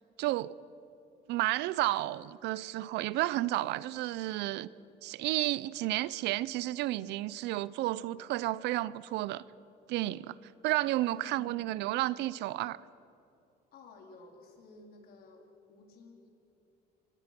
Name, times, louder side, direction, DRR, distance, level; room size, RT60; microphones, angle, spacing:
voice 1, 0.2-0.5 1.3-4.7 5.0-9.4 9.9-10.4 10.6-12.8, right 16 dB, 90° right, 0.7 m, -32 dB
voice 2, 11.2-11.7 13.7-16.3, left 2 dB, 60° left, 4.3 m, -54 dB
25.5 x 24.0 x 6.1 m
cardioid pair, 135°, 17 cm